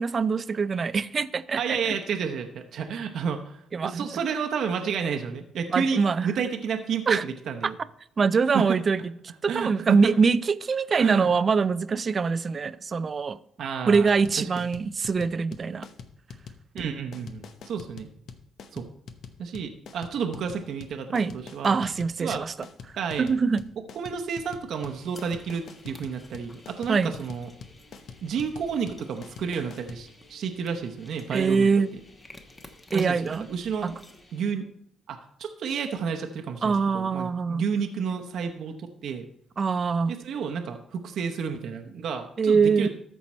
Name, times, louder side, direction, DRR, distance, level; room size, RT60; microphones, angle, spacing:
voice 1, 0.0-1.8 3.7-4.1 5.7-6.3 7.1-7.2 7.6-7.7 8.2-9.1 9.4-13.4 13.9-15.9 21.1-21.4 21.6-22.5 23.2-23.6 26.9-27.1 31.3-31.9 32.9-33.5 33.8-33.9 36.6-37.6 39.6-40.2 42.4-42.9, right 5 dB, 40° right, 0.4 m, -23 dB
voice 2, 1.6-7.8 8.5-8.6 9.5-10.0 11.0-11.3 13.6-14.5 16.7-18.1 18.7-18.9 19.4-21.8 22.2-22.4 23.0-23.3 23.9-27.5 28.2-31.7 32.9-34.0 34.3-34.6 35.1-39.3 40.1-42.9, right 6 dB, 70° right, 0.9 m, -31 dB
sound 1, 13.9-30.0, left 6 dB, 70° left, 0.8 m, -44 dB
sound 2, 24.7-34.5, left 2 dB, 30° left, 3.6 m, -56 dB
sound 3, 25.1-34.3, left 1 dB, 15° left, 1.1 m, -52 dB
13.5 x 4.6 x 4.3 m
cardioid pair, 90°, 0 cm